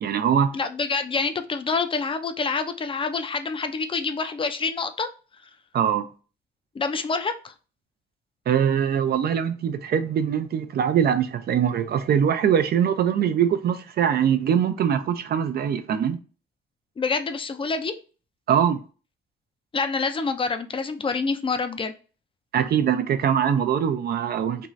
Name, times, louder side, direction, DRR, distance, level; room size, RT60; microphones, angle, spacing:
voice 1, 0.0-0.5 5.7-6.1 8.5-16.2 18.5-18.8 22.5-24.7, right 8 dB, 55° right, 0.4 m, -22 dB
voice 2, 0.5-5.1 6.7-7.5 17.0-18.0 19.7-21.9, left 4 dB, 25° left, 0.4 m, -27 dB
2.6 x 2.3 x 3.0 m
cardioid pair, 90°, 20 cm